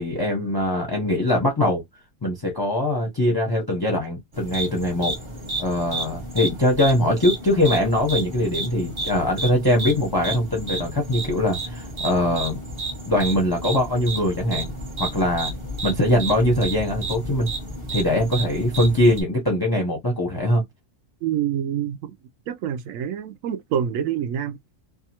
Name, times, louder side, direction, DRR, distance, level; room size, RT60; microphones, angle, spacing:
voice 1, 0.0-1.8 2.2-5.2 5.6-12.6 13.1-14.7 15.0-15.5 15.8-17.5 17.9-20.6, left 1 dB, 25° left, 0.5 m, -22 dB
sound 1, 4.3-19.2, right 2 dB, 30° right, 0.6 m, -32 dB
voice 2, 21.2-22.1 22.5-24.6, right 9 dB, 80° right, 0.9 m, -26 dB
2.7 x 2.4 x 2.8 m
omnidirectional pair, 1.4 m